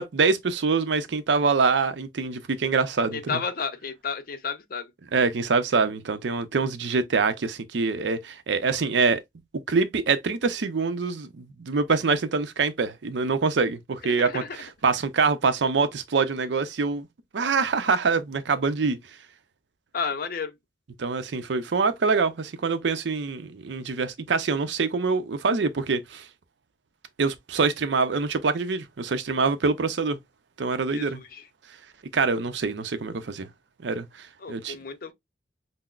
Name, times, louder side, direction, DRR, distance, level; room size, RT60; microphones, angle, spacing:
voice 1, 0.0-3.4 5.1-9.2 9.7-14.4 14.8-17.1 17.3-19.0 21.0-26.3 27.2-30.2 30.6-31.2 32.1-33.5 33.8-34.8, right 4 dB, 70° right, 0.5 m, -25 dB
voice 2, 3.1-4.9 14.0-14.6 19.9-20.6 30.9-31.5 34.4-35.1, left 5 dB, 50° left, 0.6 m, -32 dB
5.7 x 2.0 x 2.4 m
head